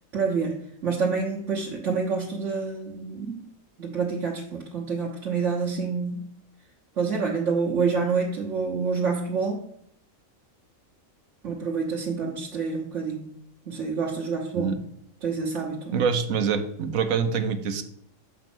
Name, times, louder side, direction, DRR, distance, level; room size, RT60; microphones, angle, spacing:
voice 1, 0.1-0.6 0.8-3.4 3.8-6.2 7.0-9.6 11.4-13.2 13.7-14.7 15.2-16.0, right 5 dB, 65° right, -3 dB, 1.4 m, -27 dB
voice 2, 15.9-17.8, right 6 dB, 80° right, 8 dB, 1.2 m, -25 dB
6.8 x 5.1 x 6.1 m, 0.71 s
omnidirectional pair, 1.4 m